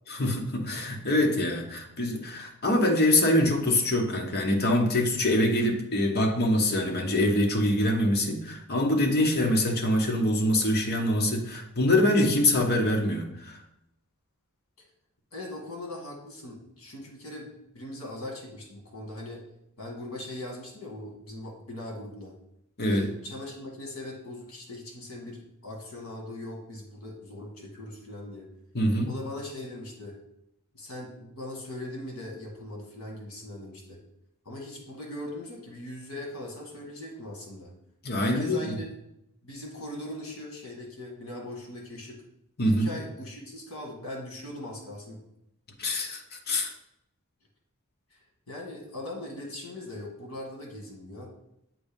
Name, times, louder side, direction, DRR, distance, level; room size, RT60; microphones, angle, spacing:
voice 1, 0.1-13.6 22.8-23.1 28.7-29.1 38.0-38.8 42.6-42.9 45.8-46.7, left 1 dB, 45° left, 2 dB, 1.0 m, -24 dB
voice 2, 15.3-19.4 19.8-22.3 22.9-28.5 29.1-30.2 30.7-34.0 34.5-37.7 38.1-38.9 39.4-42.2 42.6-45.2 48.5-51.3, left 1 dB, 65° left, 1 dB, 1.7 m, -40 dB
7.7 x 2.7 x 5.2 m, 0.80 s
head